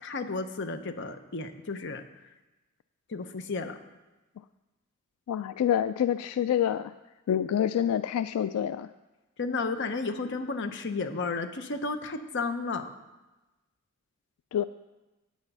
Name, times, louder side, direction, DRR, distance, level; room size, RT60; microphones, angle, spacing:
voice 1, 0.0-2.0 3.1-3.8 9.4-12.9, left 3 dB, 55° left, 8 dB, 0.8 m, -33 dB
voice 2, 5.3-6.9 7.3-8.9 14.5-14.6, left 9 dB, 85° left, 13 dB, 0.3 m, -27 dB
9.2 x 8.0 x 5.4 m, 1.1 s
head